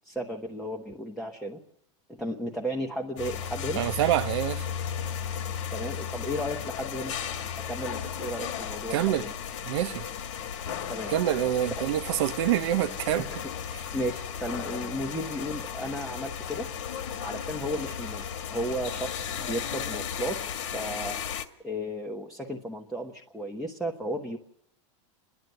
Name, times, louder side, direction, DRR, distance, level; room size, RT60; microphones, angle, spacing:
voice 1, 0.0-1.6 2.2-3.8 5.7-7.1 7.6-9.3 10.9-11.1 11.8-11.9 13.2-13.4 13.9-16.7 17.2-20.4 20.7-21.2 21.6-24.4, equal, ahead, 1.1 m, -34 dB
sound 1, 3.2-21.4, left 8 dB, 70° left, 1.8 m, -35 dB
voice 2, 3.7-4.7 8.9-9.3 9.6-10.0 11.1-13.3 13.7-13.8, right 13 dB, 55° right, 1.1 m, -26 dB
29.0 x 11.0 x 7.9 m
supercardioid pair, 170°, 16 cm